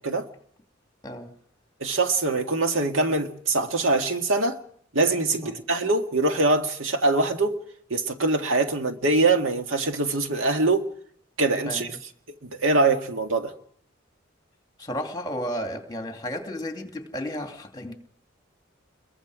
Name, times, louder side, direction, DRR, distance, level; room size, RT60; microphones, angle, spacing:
voice 1, 1.8-4.6 4.9-7.6 7.9-10.9 11.4-11.9 12.4-13.5, right 3 dB, 90° right, 1.9 m, -23 dB
voice 2, 14.8-17.9, equal, 20° left, 2.7 m, -33 dB
28.0 x 22.0 x 5.0 m
head